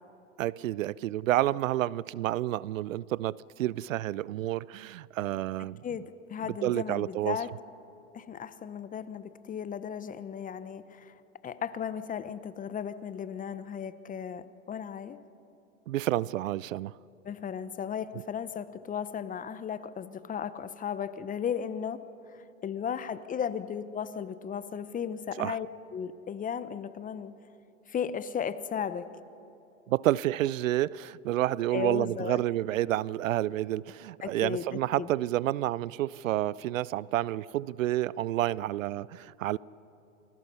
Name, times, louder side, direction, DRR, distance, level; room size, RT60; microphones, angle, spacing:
voice 1, 0.4-5.8 6.6-7.4 15.9-16.9 25.4-25.6 29.9-39.6, right 14 dB, 80° right, 0.5 m, -29 dB
voice 2, 5.8-7.5 8.1-11.2 11.4-15.2 17.2-22.0 22.3-25.7 25.9-27.3 27.9-29.1 31.7-32.4 34.2-34.7 35.0-35.1, left 8 dB, 20° left, 0.9 m, -35 dB
29.0 x 20.5 x 5.6 m
hypercardioid pair, 100°, 39 cm